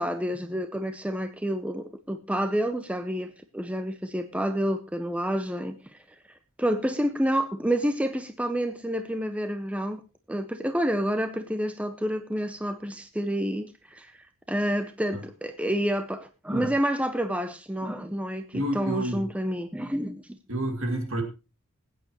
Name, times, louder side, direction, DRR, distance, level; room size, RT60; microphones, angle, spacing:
voice 1, 0.0-6.0 6.6-10.0 10.3-14.1 14.5-20.2, equal, 5° right, 8 dB, 0.6 m, -29 dB
voice 2, 18.5-19.3 20.5-21.2, right 1 dB, 60° right, 5 dB, 2.2 m, -29 dB
20.5 x 9.0 x 3.0 m, 0.29 s
head